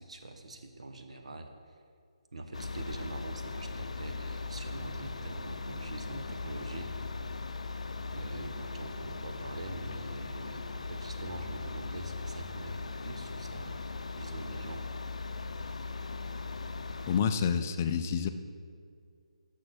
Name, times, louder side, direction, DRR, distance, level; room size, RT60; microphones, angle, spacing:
voice 1, 0.0-1.8 2.3-7.3 8.1-13.8 14.2-14.8, right 2 dB, 70° right, 5 dB, 1.0 m, -43 dB
sound 1, 2.5-17.2, left 3 dB, 80° left, 0.5 m, -39 dB
voice 2, 17.1-18.3, left 7 dB, 20° left, 8 dB, 0.3 m, -28 dB
6.3 x 6.1 x 6.3 m, 2.3 s
hypercardioid pair, 170°, 3 cm